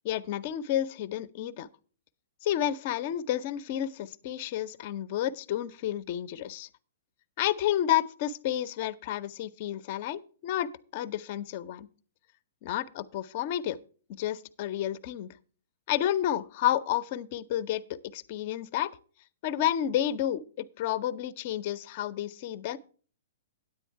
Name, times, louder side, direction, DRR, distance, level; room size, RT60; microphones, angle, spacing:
voice 1, 0.0-1.7 2.4-6.7 7.4-11.9 12.6-13.8 14.1-15.4 15.9-18.9 19.4-22.8, left 11 dB, 45° left, 17 dB, 0.5 m, -30 dB
9.8 x 8.4 x 4.5 m, 0.41 s
hypercardioid pair, 120°, 0 cm